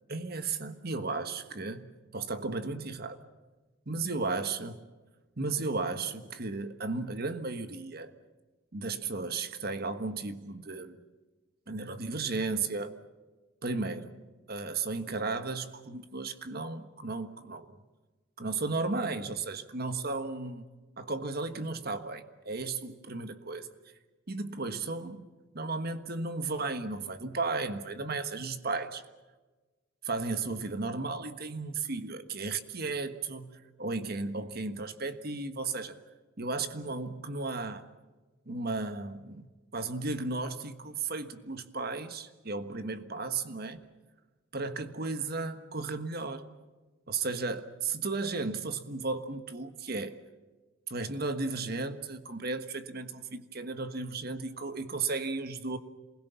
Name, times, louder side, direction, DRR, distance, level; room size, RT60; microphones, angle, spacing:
voice 1, 0.1-3.2 3.9-4.8 5.4-8.1 8.7-11.0 11.7-13.0 13.6-14.2 14.5-17.8 18.4-20.6 21.0-23.7 24.3-25.3 25.5-29.0 30.0-33.5 33.8-36.0 36.4-37.8 38.5-39.5 39.7-43.8 44.5-46.5 47.1-50.2 50.9-55.8, right 3 dB, 50° right, 1.5 m, -34 dB
27.5 x 21.0 x 7.1 m
head